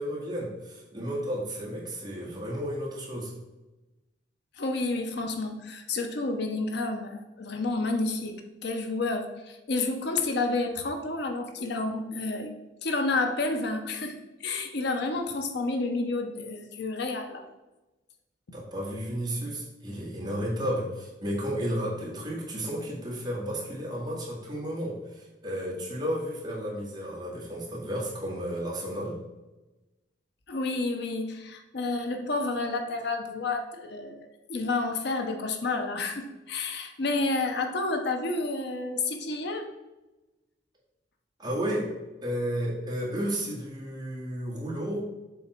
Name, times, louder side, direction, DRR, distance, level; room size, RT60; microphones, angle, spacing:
voice 1, 0.0-3.3 18.5-29.2 41.4-41.9 42.2-45.1, equal, 25° right, -5 dB, 2.1 m, -32 dB
voice 2, 4.6-12.5 12.8-17.4 30.5-39.7, left 3 dB, 65° left, 5 dB, 0.8 m, -30 dB
7.3 x 3.8 x 4.5 m, 1.1 s
head